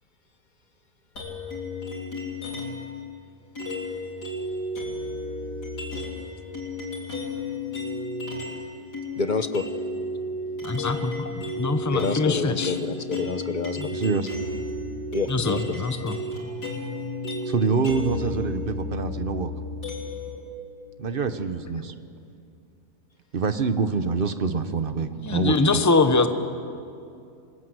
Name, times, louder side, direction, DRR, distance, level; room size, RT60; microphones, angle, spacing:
sound 1, 1.2-2.9 3.6-8.6 8.9-20.4, left 2 dB, 85° left, 4.2 m, -33 dB
voice 1, 9.2-9.6 11.2-11.3 11.9-13.9 15.1-15.8, left 4 dB, 35° left, 10 dB, 0.9 m, -28 dB
voice 2, 10.6-12.7 13.8-13.9 15.3-16.2 25.2-26.3, left 3 dB, 15° left, 8 dB, 0.9 m, -23 dB
voice 3, 13.9-14.3 17.5-19.5 21.0-21.9 23.3-25.8, right 4 dB, 40° right, 10 dB, 1.1 m, -26 dB
27.0 x 20.5 x 8.0 m, 2.5 s
omnidirectional pair, 1.7 m